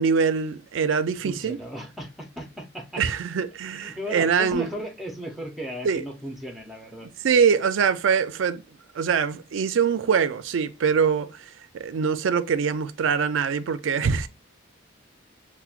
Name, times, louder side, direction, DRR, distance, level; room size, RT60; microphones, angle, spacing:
voice 1, 0.0-1.6 3.0-4.7 5.8-6.0 7.2-8.6 9.0-11.5 11.7-14.3, right 6 dB, 75° right, 0.4 m, -23 dB
voice 2, 1.2-3.0 3.7-7.1, equal, ahead, 0.6 m, -36 dB
5.6 x 2.1 x 2.4 m
head